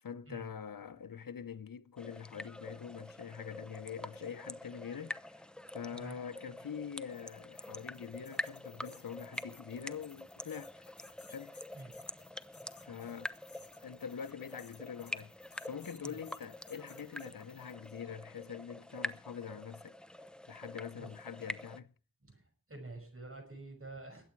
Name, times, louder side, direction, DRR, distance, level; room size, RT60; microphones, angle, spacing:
voice 1, 0.0-5.4 5.7-10.9 11.3-11.6 12.8-13.3 13.8-19.9 20.5-21.9, left 7 dB, 80° left, 0.8 m, -44 dB
sound 1, 2.0-21.8, left 1 dB, 5° left, 0.7 m, -46 dB
sound 2, 7.0-17.9, left 4 dB, 60° left, 2.1 m, -60 dB
voice 2, 22.2-24.2, right 2 dB, 40° right, 5.8 m, -48 dB
21.5 x 8.6 x 4.6 m
wide cardioid pair, 75°, 34 cm